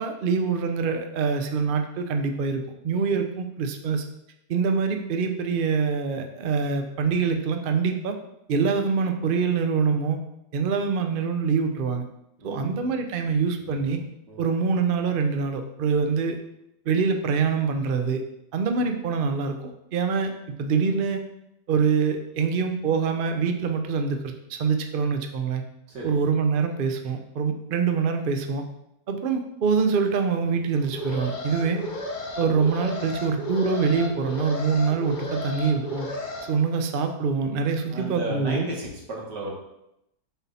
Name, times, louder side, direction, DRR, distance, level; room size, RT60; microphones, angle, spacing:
voice 1, 0.0-4.0 4.5-8.1 8.5-10.2 10.5-12.0 12.4-14.0 14.4-16.4 16.9-18.2 18.5-20.3 20.6-21.2 21.7-25.6 26.0-28.6 29.1-31.8 32.4-36.1 36.5-38.7, right 5 dB, 65° right, 6 dB, 0.5 m, -25 dB
voice 2, 12.4-12.9 13.6-13.8 14.3-14.5 25.9-26.2 37.9-39.5, right 1 dB, 85° right, -2 dB, 2.2 m, -34 dB
Alarm, 30.8-36.4, left 1 dB, 40° left, 0.8 m, -34 dB
7.0 x 4.1 x 4.2 m, 0.83 s
omnidirectional pair, 1.8 m